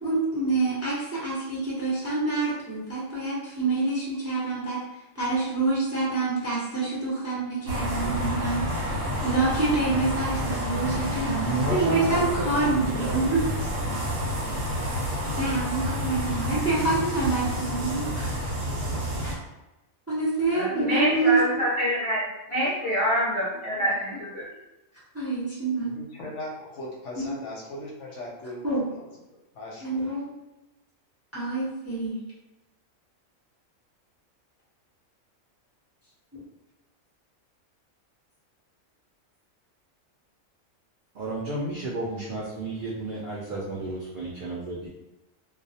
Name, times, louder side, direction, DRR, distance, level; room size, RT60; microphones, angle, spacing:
voice 1, 0.0-4.8 5.1-8.9 9.2-11.4 11.7-13.7 15.4-18.5 19.2-19.3 20.1-21.4 25.1-26.0 27.2-27.3 28.6-28.8 29.8-30.3 31.3-32.2, right 3 dB, 20° right, -8 dB, 0.4 m, -27 dB
sound 1, 7.6-19.3, equal, 60° right, 0.9 m, -29 dB
voice 2, 11.3-13.4 41.2-44.9, right 2 dB, 80° right, -5 dB, 0.4 m, -32 dB
voice 3, 20.5-24.4, equal, 35° left, -9 dB, 0.5 m, -26 dB
voice 4, 25.9-29.1 29.5-30.1, left 1 dB, 70° left, -2 dB, 0.8 m, -39 dB
2.2 x 2.0 x 2.7 m, 0.99 s
omnidirectional pair, 1.4 m